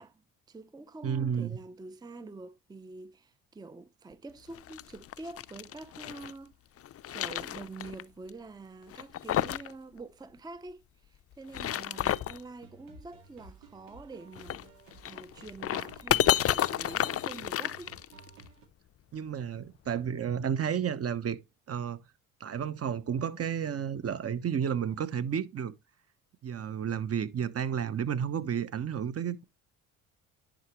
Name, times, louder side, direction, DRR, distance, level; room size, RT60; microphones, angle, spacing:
voice 1, 0.0-6.6 7.1-14.7 15.1-17.9, right 3 dB, 10° right, 0.6 m, -46 dB
voice 2, 1.0-1.6 19.1-21.4 21.7-22.0 22.4-25.7 26.4-29.4, right 8 dB, 40° right, 1.0 m, -31 dB
sound 1, 4.5-6.3 6.8-8.0 8.3-8.4 8.9-9.7 10.0-10.1 11.3-12.4 14.3-18.4, left 12 dB, 40° left, 0.5 m, -31 dB
sound 2, 12.6-18.7, right 3 dB, 90° right, 2.1 m, -55 dB
10.5 x 5.0 x 3.0 m
supercardioid pair, 65°, 35 cm